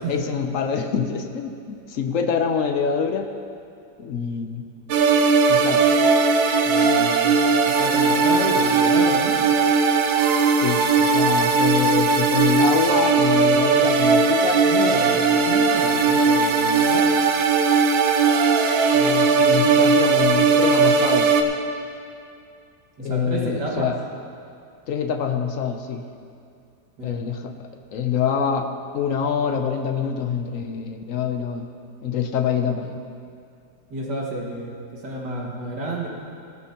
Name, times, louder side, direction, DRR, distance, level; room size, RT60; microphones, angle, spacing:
voice 1, 0.1-3.3 4.0-4.7 5.5-5.9 10.6-14.7 18.9-21.4 23.0-24.0 24.9-26.1 27.0-27.5 27.9-31.7 32.0-33.0, left 7 dB, 65° left, 6 dB, 0.8 m, -25 dB
sound 1, 4.9-21.4, right 4 dB, 85° right, 1.5 m, -18 dB
voice 2, 6.6-9.4 14.6-17.1 23.0-23.9 27.0-27.2 33.9-36.1, right 2 dB, 60° right, -3 dB, 2.5 m, -30 dB
16.5 x 13.5 x 2.9 m, 2.4 s
omnidirectional pair, 2.0 m